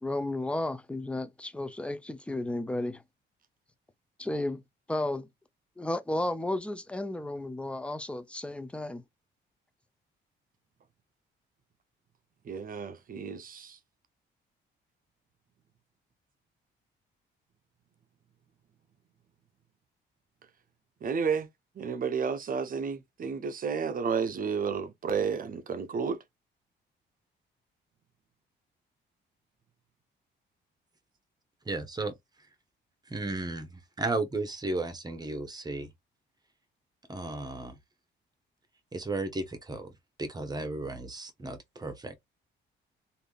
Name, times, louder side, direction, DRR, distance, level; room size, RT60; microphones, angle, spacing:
voice 1, 0.0-3.0 4.2-4.6 4.9-5.3 5.8-9.0, left 1 dB, 5° left, 0.5 m, -33 dB
voice 2, 12.5-13.8 21.0-21.5 21.8-26.2, right 6 dB, 45° right, 0.7 m, -31 dB
voice 3, 31.6-32.1 33.1-35.9 37.1-37.8 38.9-39.9 40.2-42.2, right 2 dB, 20° right, 0.9 m, -34 dB
3.4 x 2.6 x 2.4 m
cardioid pair, 90°, 20 cm